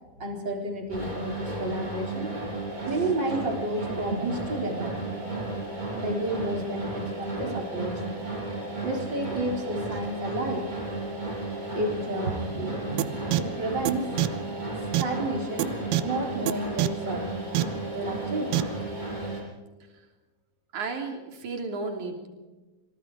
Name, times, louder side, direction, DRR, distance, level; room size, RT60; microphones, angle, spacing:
voice 1, 0.2-2.4 2.9-5.0 5.9-8.0 8.8-10.7 11.7-14.4 15.0-15.7 16.0-17.3 17.9-18.8, right 1 dB, 25° right, 1 dB, 4.4 m, -31 dB
sound 1, 0.9-19.4, right 2 dB, 10° right, 7.5 m, -33 dB
sound 2, 13.0-13.1 13.3-13.4 13.9-14.0 14.2-14.3 14.9-15.0 15.6-15.7 15.9-16.0 16.5-16.6 16.8-16.9 17.6-17.7 18.5-18.6, right 17 dB, 80° right, 2.9 m, -23 dB
voice 2, 20.7-22.3, right 3 dB, 50° right, 4 dB, 4.3 m, -33 dB
27.0 x 19.5 x 4.9 m, 1.2 s
omnidirectional pair, 4.6 m